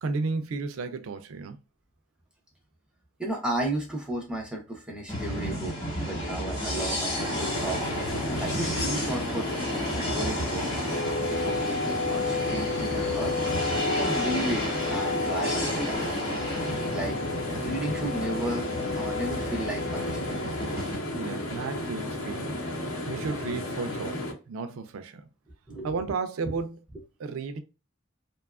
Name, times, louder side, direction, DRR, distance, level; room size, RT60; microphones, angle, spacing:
voice 1, 0.0-1.6 21.1-22.6 23.1-25.3 25.8-26.8 27.2-27.6, right 4 dB, 85° right, 0.4 m, -33 dB
voice 2, 3.2-5.8 6.0-7.8 8.4-9.5 10.0-10.9 11.3-16.0 16.9-17.2 17.5-20.5 25.7-26.0 26.4-26.6, right 1 dB, 5° right, 0.5 m, -34 dB
sound 1, 5.1-21.0, equal, 25° left, 0.9 m, -33 dB
sound 2, 7.2-24.3, left 1 dB, 80° left, 0.7 m, -34 dB
sound 3, 10.9-20.8, left 3 dB, 50° left, 0.4 m, -33 dB
2.6 x 2.3 x 2.3 m
head